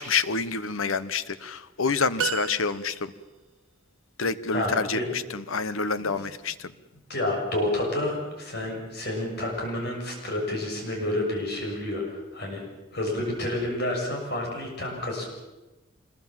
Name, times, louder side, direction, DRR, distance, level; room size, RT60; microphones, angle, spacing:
voice 1, 0.0-2.9 4.2-5.0 5.3-6.5, left 4 dB, 80° left, 14 dB, 1.1 m, -27 dB
sound 1, 2.2-3.3, right 6 dB, 75° right, 1.1 m, -32 dB
voice 2, 4.5-5.1 6.0-6.1 7.1-12.6 12.9-15.2, left 1 dB, 50° left, 0 dB, 6.6 m, -29 dB
26.0 x 20.5 x 7.4 m, 1.1 s
head